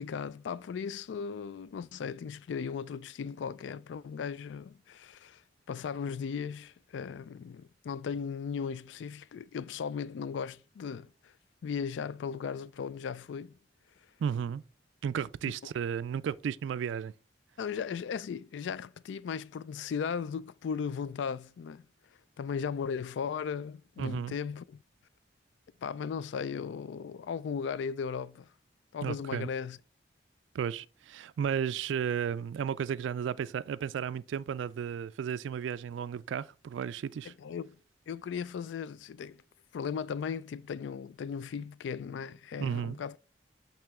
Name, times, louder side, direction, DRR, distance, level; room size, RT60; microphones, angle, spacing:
voice 1, 0.0-5.4 5.7-11.3 11.6-13.5 17.6-21.9 22.4-24.8 25.8-28.5 28.9-29.8 37.2-37.8 38.1-39.4 39.7-43.2, left 6 dB, 85° left, 0.3 m, -37 dB
voice 2, 14.2-14.6 15.0-17.1 24.0-24.3 29.0-29.5 30.5-37.3 42.6-43.0, right 8 dB, 90° right, 0.3 m, -33 dB
8.7 x 3.0 x 3.6 m
head